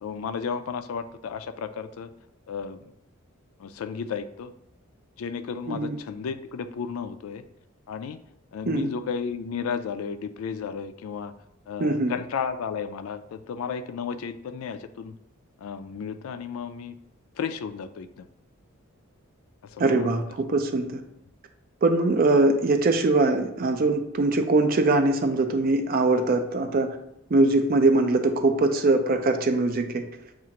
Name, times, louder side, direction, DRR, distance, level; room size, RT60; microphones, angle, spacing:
voice 1, 0.0-2.1 2.5-2.9 3.6-4.5 5.2-7.4 7.9-8.2 8.5-11.3 11.7-15.1 15.6-17.0 17.4-18.3 19.7-20.1, left 6 dB, 75° left, 11 dB, 0.3 m, -33 dB
voice 2, 11.8-12.1 19.8-21.0 21.8-27.0 27.3-30.1, right 2 dB, 45° right, 7 dB, 0.4 m, -22 dB
7.2 x 2.4 x 2.9 m, 0.82 s
head